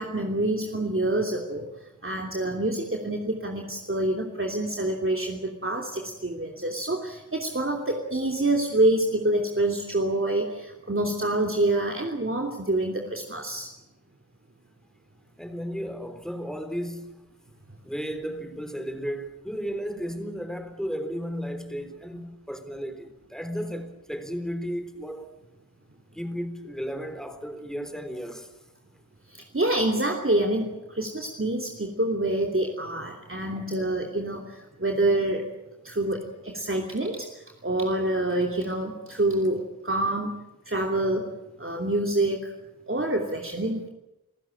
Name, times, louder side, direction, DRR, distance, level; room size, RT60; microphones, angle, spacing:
voice 1, 0.0-13.7 29.3-35.5 35.8-40.4 40.6-41.3 41.6-42.5 42.9-43.9, right 1 dB, 40° right, 3.0 m, -27 dB
voice 2, 15.4-17.2 17.8-25.3 26.1-28.5, equal, ahead, 3.7 m, -34 dB
28.0 x 15.0 x 8.8 m
wide cardioid pair, 40°, 33 cm